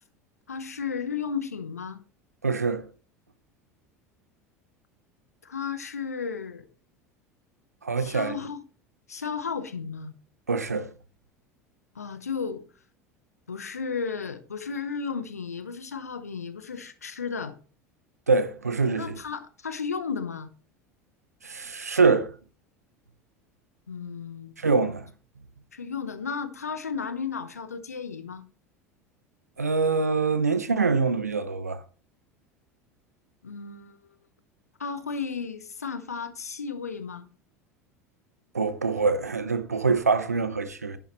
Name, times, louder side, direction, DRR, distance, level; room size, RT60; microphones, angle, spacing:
voice 1, 0.5-2.0 5.4-6.6 8.0-8.6 9.1-10.1 11.9-12.6 13.5-17.6 18.9-20.5 23.9-24.5 25.7-28.4 33.4-34.0 34.8-37.3, left 5 dB, 80° left, 0.9 m, -34 dB
voice 2, 2.4-2.9 7.8-8.4 10.5-10.9 18.3-19.2 21.4-22.3 24.6-25.1 29.6-31.8 38.5-41.0, right 4 dB, 85° right, 0.8 m, -24 dB
10.5 x 9.1 x 3.1 m
figure-of-eight pair, 75°, 8 cm